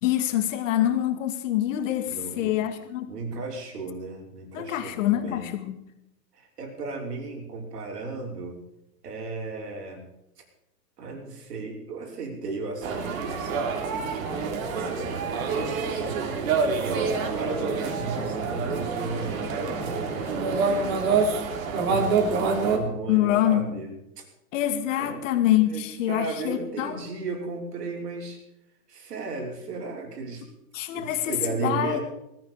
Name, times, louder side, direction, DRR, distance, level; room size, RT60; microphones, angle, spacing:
voice 1, 0.0-3.1 4.5-5.8 23.1-23.7 24.5-27.0 30.7-31.3 31.6-32.0, left 12 dB, 55° left, 8 dB, 2.2 m, -25 dB
voice 2, 2.1-2.6 3.1-5.5 6.3-8.6 9.0-10.0 11.0-15.1 15.6-20.4 21.7-24.3 25.0-28.4 28.9-30.4 30.9-32.0, right 3 dB, 85° right, 1 dB, 5.9 m, -35 dB
sound 1, 12.8-22.8, right 4 dB, 60° right, 3.6 m, -27 dB
20.0 x 14.0 x 4.9 m, 0.83 s
hypercardioid pair, 150°, 46 cm